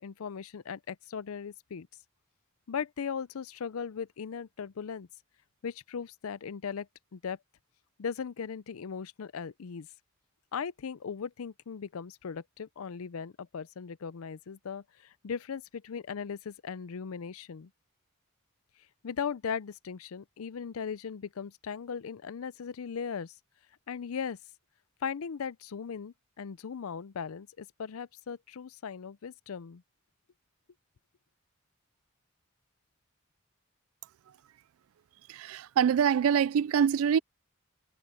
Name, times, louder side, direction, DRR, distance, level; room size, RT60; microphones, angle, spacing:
voice 1, 0.0-1.9 2.7-5.1 5.6-7.4 8.0-9.9 10.5-17.7 19.0-23.3 23.9-24.4 25.0-29.8, left 6 dB, 85° left, 0.5 m, -38 dB
voice 2, 35.3-37.2, right 8 dB, 75° right, 0.3 m, -25 dB
head